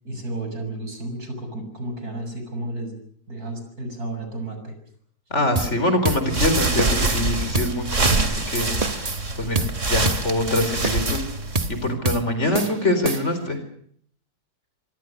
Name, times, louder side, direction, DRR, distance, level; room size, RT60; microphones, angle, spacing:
voice 1, 0.0-3.0 3.3-4.7 12.4-12.5, right 2 dB, 75° right, 6 dB, 7.5 m, -32 dB
voice 2, 5.3-8.7 9.4-11.2 11.7-13.6, left 1 dB, 45° left, 9 dB, 4.6 m, -24 dB
sound 1, 5.6-5.8 6.0-6.3 6.5-7.2 7.5-7.8 8.0-8.3 8.5-9.2 9.6-9.8 10.1-10.3 10.6-11.2 11.6-11.8 12.1-12.3 12.5-13.5, right 3 dB, 25° right, 1.3 m, -27 dB
sound 2, 6.2-11.9, right 3 dB, 50° right, 3.0 m, -25 dB
25.5 x 24.0 x 6.6 m, 0.63 s
omnidirectional pair, 1.6 m